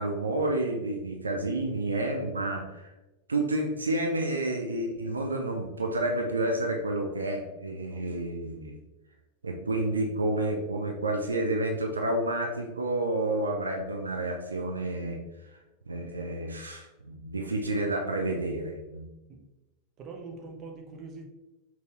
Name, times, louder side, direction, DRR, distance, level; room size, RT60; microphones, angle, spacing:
voice 1, 0.0-2.9 3.3-8.8 9.4-15.2 15.5-15.6 15.9-19.1, right 1 dB, 75° right, 2 dB, 0.5 m, -30 dB
voice 2, 20.0-21.3, right 4 dB, 30° right, 2 dB, 0.9 m, -43 dB
5.5 x 3.0 x 3.0 m, 1.0 s
figure-of-eight pair, 90°, 0 cm